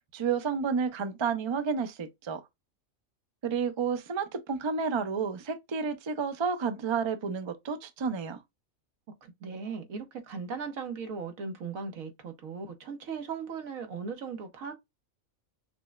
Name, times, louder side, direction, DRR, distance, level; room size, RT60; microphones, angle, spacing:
voice 1, 0.1-2.4 3.4-8.4, right 5 dB, 50° right, 0.3 m, -30 dB
voice 2, 9.2-14.8, right 5 dB, 90° right, 1.4 m, -38 dB
5.9 x 2.1 x 2.2 m
omnidirectional pair, 1.4 m